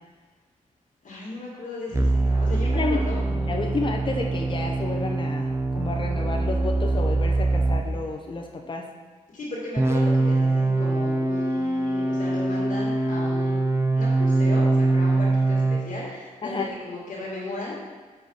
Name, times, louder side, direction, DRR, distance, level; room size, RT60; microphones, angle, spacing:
voice 1, 1.0-3.2 9.3-13.6 14.0-17.8, left 2 dB, 65° left, -5 dB, 2.1 m, -36 dB
sound 1, 1.9-7.9 9.8-15.9, right 2 dB, 20° right, 0.6 m, -23 dB
voice 2, 3.3-8.9 16.4-16.7, left 3 dB, 35° left, 2 dB, 0.7 m, -30 dB
5.9 x 5.1 x 5.5 m, 1.3 s
wide cardioid pair, 110°, 14 cm